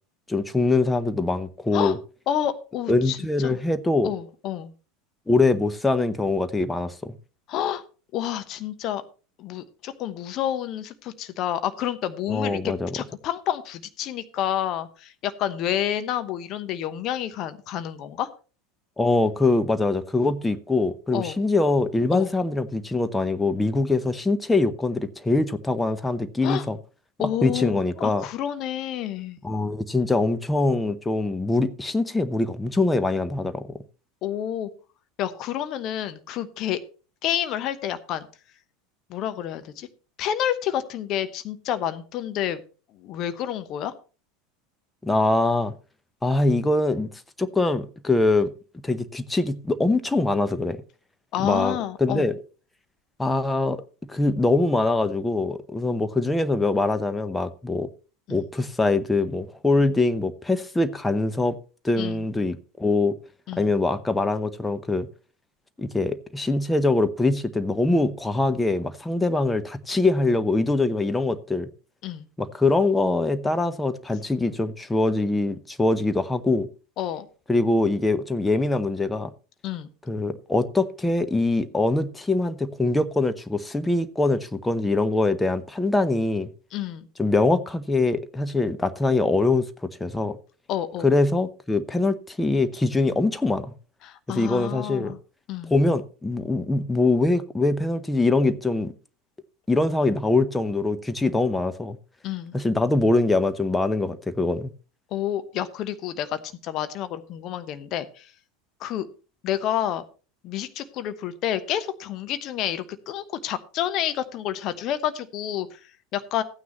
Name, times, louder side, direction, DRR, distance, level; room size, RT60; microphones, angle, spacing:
voice 1, 0.3-2.0 2.9-4.1 5.3-7.1 12.3-12.9 19.0-26.8 27.4-28.2 29.4-33.7 45.0-45.7 46.2-47.1 47.4-48.5 48.8-50.8 51.4-52.3 53.2-53.8 54.1-57.9 58.3-61.6 61.8-63.1 63.6-65.1 65.8-71.7 72.4-76.7 77.5-79.3 80.1-86.5 87.2-90.4 91.0-93.7 94.3-95.1 95.7-98.9 99.7-102.0 102.5-104.7, left 2 dB, 10° left, 0.8 m, -23 dB
voice 2, 2.3-3.6 4.0-4.7 7.5-7.8 8.1-9.0 9.4-18.3 21.1-21.4 22.1-22.3 26.4-26.7 27.2-29.4 34.2-34.7 35.2-36.8 37.2-38.3 39.1-39.9 40.2-42.6 42.9-43.9 51.3-52.3 58.3-58.5 62.0-62.2 63.5-63.7 72.0-72.3 77.0-77.3 79.6-79.9 86.7-87.1 90.7-91.1 94.0-95.2 95.5-95.7 102.2-102.5 105.1-108.3 108.8-109.1 109.4-110.0 110.4-116.4, left 11 dB, 45° left, 0.9 m, -29 dB
14.5 x 9.4 x 3.0 m
figure-of-eight pair, 80°, 0 cm